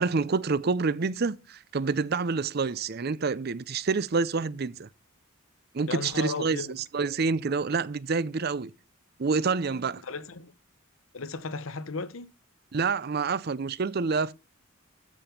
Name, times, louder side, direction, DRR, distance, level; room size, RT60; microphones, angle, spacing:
voice 1, 0.0-4.9 5.7-8.7 9.2-10.0 12.7-14.3, right 4 dB, 50° right, 0.5 m, -27 dB
voice 2, 5.9-6.7 10.0-10.5 11.1-12.3, left 4 dB, 80° left, 0.9 m, -35 dB
13.5 x 5.2 x 5.9 m
head